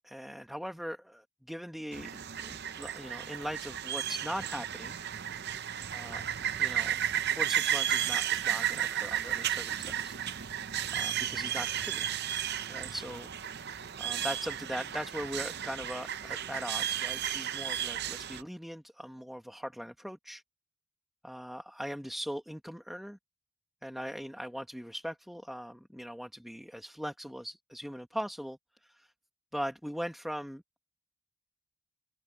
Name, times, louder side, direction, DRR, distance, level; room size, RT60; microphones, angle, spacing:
voice 1, 0.0-5.0 5.9-6.3 6.5-6.9 7.2-10.2 10.9-12.1 12.7-13.3 14.0-20.4 21.2-23.2 23.8-29.1 29.5-30.8, equal, ahead, 1.4 m, -40 dB
sound 1, 1.9-18.4, right 10 dB, 45° right, 0.7 m, -33 dB
head